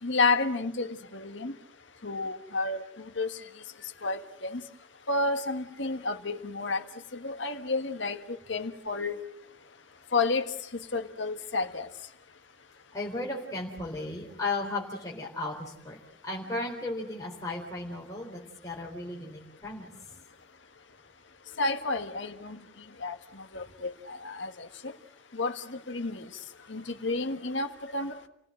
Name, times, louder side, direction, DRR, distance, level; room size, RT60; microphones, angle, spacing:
voice 1, 0.0-1.6 2.0-3.6 4.0-4.6 5.1-6.8 7.1-9.2 10.1-11.9 21.6-22.6 23.0-24.9 25.3-26.3 26.7-28.3, left 3 dB, 70° left, 7 dB, 1.5 m, -31 dB
voice 2, 12.9-19.9, left 2 dB, 20° left, -3 dB, 3.9 m, -35 dB
29.5 x 17.0 x 7.6 m, 0.82 s
head